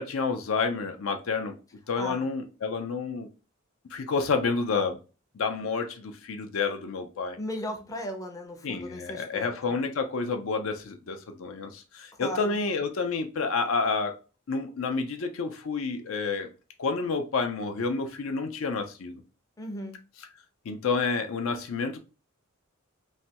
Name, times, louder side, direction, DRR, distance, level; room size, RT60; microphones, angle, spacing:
voice 1, 0.0-1.5 1.9-3.3 3.9-5.0 5.3-7.4 8.6-14.2 14.5-16.5 16.8-19.2 20.7-22.0, left 4 dB, 75° left, 0.5 m, -29 dB
voice 2, 2.0-2.3 7.4-9.8 12.2-12.6 19.6-20.0, equal, 15° left, 0.5 m, -37 dB
3.1 x 2.2 x 2.8 m
head